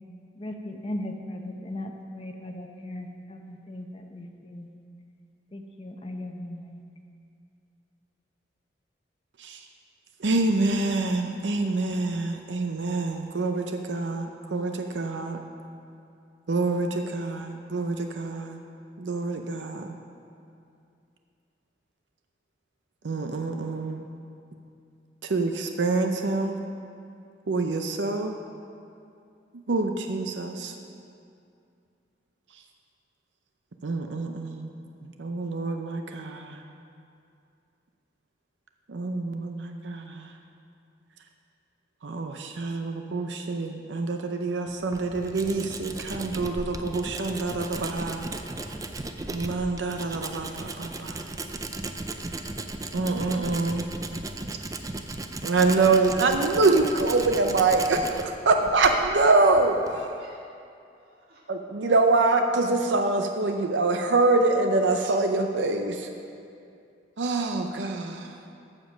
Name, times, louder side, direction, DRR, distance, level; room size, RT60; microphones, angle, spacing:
voice 1, 0.3-4.7 5.5-6.8, left 1 dB, 30° left, 4 dB, 0.7 m, -37 dB
voice 2, 10.2-15.4 16.5-18.6 19.0-20.0 23.0-24.0 25.2-26.6 27.5-28.3 29.7-30.7 32.5-32.6 33.8-34.7 35.0-36.6 38.9-40.3 42.0-48.3 49.3-51.2 52.9-53.9 55.4-60.1 61.5-66.1 67.2-68.4, right 3 dB, 80° right, 5 dB, 0.6 m, -25 dB
Tools, 44.7-60.0, right 2 dB, 20° right, 0.4 m, -36 dB
voice 3, 60.2-60.5 60.9-61.4, right 2 dB, 60° right, -3 dB, 2.0 m, -60 dB
14.5 x 5.3 x 6.3 m, 2.5 s
head